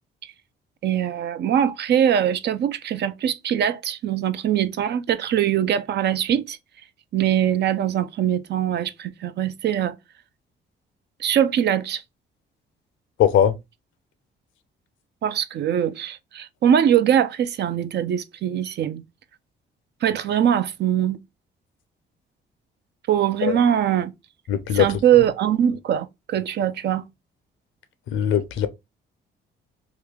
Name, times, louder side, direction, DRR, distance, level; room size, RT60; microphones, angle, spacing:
voice 1, 0.8-6.6 7.1-10.0 11.2-12.0 15.2-19.0 20.0-21.2 23.1-24.1 24.7-27.0, right 9 dB, 60° right, 0.5 m, -22 dB
voice 2, 13.2-13.5 23.4-23.6 24.5-24.9 28.1-28.7, left 9 dB, 80° left, 0.6 m, -20 dB
3.1 x 2.3 x 3.5 m
cardioid pair, 90°, 20 cm